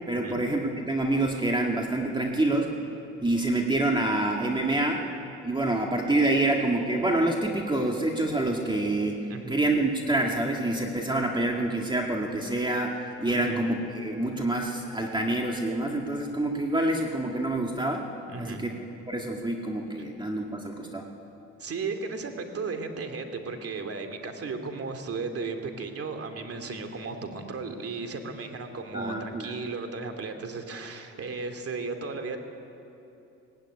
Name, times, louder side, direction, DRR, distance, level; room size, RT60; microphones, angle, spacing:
voice 1, 0.1-2.7 3.2-5.0 5.4-9.2 9.5-18.1 18.4-18.7 19.1-21.0 28.9-29.5, right 2 dB, 15° right, 1 dB, 2.0 m, -27 dB
voice 2, 9.3-9.6 13.3-13.6 18.3-18.6 21.6-32.4, right 4 dB, 50° right, 6 dB, 2.5 m, -35 dB
18.0 x 17.0 x 9.7 m, 2.8 s
cardioid pair, 90°, 30 cm